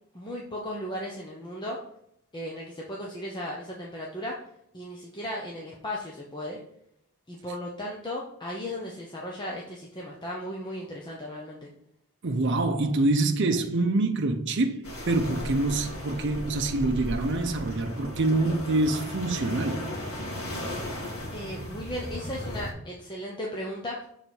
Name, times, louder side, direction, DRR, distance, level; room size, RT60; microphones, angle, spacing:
voice 1, 0.1-1.8 2.3-4.4 4.7-6.6 7.3-11.7 21.3-24.1, left 1 dB, 20° left, 0.9 m, -36 dB
voice 2, 12.2-19.9, right 2 dB, 55° right, 0.7 m, -26 dB
sound 1, 14.8-22.7, left 1 dB, 85° left, 2.0 m, -36 dB
6.9 x 4.0 x 4.5 m
head